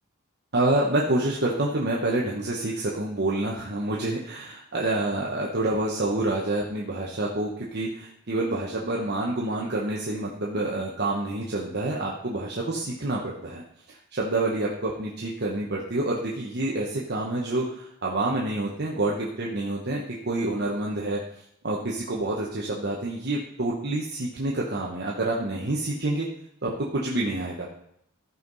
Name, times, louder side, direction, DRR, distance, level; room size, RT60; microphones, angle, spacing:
voice 1, 0.5-21.2 21.6-26.3 26.6-27.7, right 2 dB, 50° right, -3 dB, 1.2 m, -28 dB
14.0 x 5.6 x 4.0 m, 0.75 s
head